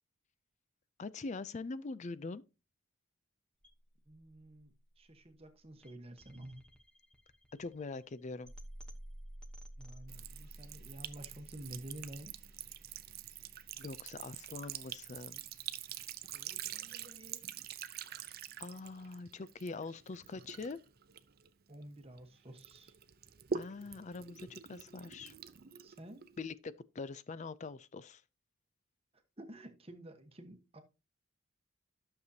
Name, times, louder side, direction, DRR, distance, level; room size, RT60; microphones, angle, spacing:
voice 1, 1.0-2.4 7.6-8.5 13.8-15.5 18.1-18.2 18.6-20.8 23.5-25.3 26.4-28.2, left 3 dB, 35° left, 0.4 m, -43 dB
sound 1, 3.6-15.6, right 1 dB, 5° left, 1.0 m, -54 dB
voice 2, 4.1-6.6 9.8-12.4 16.3-17.4 21.7-22.9 25.8-26.3 29.4-30.8, right 1 dB, 30° right, 1.2 m, -51 dB
Sink (filling or washing) / Trickle dribble, 10.1-22.2 22.6-26.4, right 8 dB, 45° right, 0.6 m, -46 dB
12.0 x 6.8 x 2.8 m
head